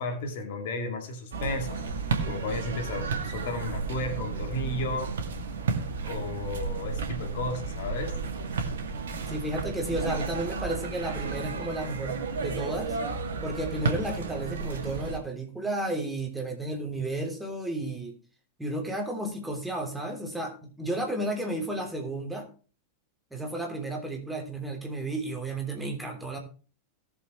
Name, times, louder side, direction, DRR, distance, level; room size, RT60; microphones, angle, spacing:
voice 1, 0.0-1.8 2.3-5.2 6.0-8.2, left 2 dB, 55° left, 5 dB, 2.2 m, -33 dB
sound 1, 1.3-15.2, right 4 dB, 65° right, 2.0 m, -33 dB
voice 2, 9.3-13.0 13.4-18.1 18.6-22.5 23.3-26.4, right 1 dB, 5° right, 2 dB, 3.3 m, -32 dB
18.0 x 7.1 x 3.2 m, 0.37 s
figure-of-eight pair, 90°, 0 cm